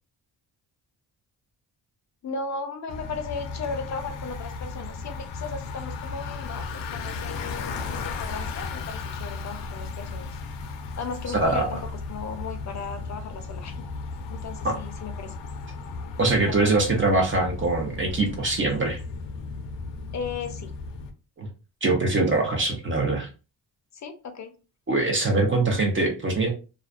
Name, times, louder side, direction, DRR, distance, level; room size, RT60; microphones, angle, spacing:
voice 1, 2.2-10.4 11.0-13.8 14.3-15.4 16.4-16.7 20.1-20.7 23.9-24.5, left 4 dB, 40° left, 6 dB, 0.6 m, -36 dB
Bicycle, 2.9-21.1, left 4 dB, 85° left, 0.6 m, -35 dB
voice 2, 11.3-11.7 14.6-14.8 16.2-19.0 21.4-21.5 21.8-23.3 24.9-26.5, right 2 dB, 30° right, 1 dB, 0.6 m, -23 dB
2.4 x 2.1 x 2.4 m, 0.32 s
cardioid pair, 105°, 42 cm